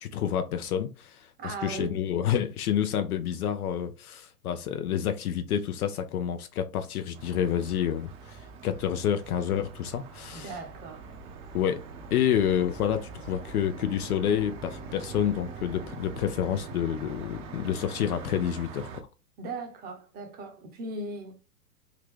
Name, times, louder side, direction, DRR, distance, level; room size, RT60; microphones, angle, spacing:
voice 1, 0.0-10.5 11.5-11.8 12.1-19.1, left 9 dB, 65° left, 0.5 m, -29 dB
voice 2, 1.4-2.0 10.3-11.1 19.4-21.4, right 3 dB, 20° right, 0.7 m, -38 dB
sound 1, 7.1-19.0, right 4 dB, 50° right, 0.8 m, -43 dB
3.8 x 2.2 x 3.1 m
hypercardioid pair, 110°, 48 cm